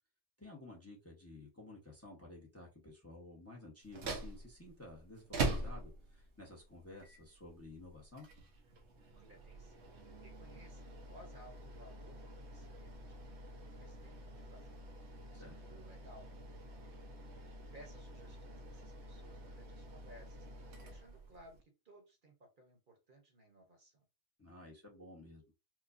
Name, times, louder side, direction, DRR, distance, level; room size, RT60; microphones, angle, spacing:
voice 1, 0.4-8.3 15.3-15.5 24.4-25.4, left 2 dB, 15° left, -1 dB, 0.8 m, -53 dB
sound 1, 3.8-21.6, right 3 dB, 80° right, 1.0 m, -45 dB
voice 2, 9.1-9.9 10.2-16.9 17.4-24.0, right 1 dB, 50° right, 3 dB, 1.0 m, -60 dB
4.7 x 2.2 x 2.5 m, 0.28 s
omnidirectional pair, 1.1 m